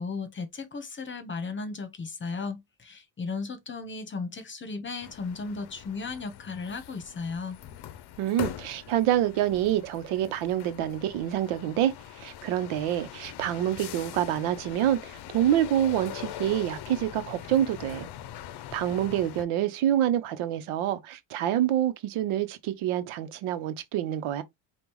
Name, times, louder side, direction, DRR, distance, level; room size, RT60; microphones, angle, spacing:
voice 1, 0.0-7.6, left 4 dB, 25° left, 1.0 m, -35 dB
sound 1, 5.0-19.5, left 11 dB, 55° left, 0.6 m, -42 dB
voice 2, 8.2-18.1 18.7-24.4, right 11 dB, 90° right, 0.9 m, -27 dB
5.2 x 2.4 x 3.1 m
cardioid pair, 120°, 49 cm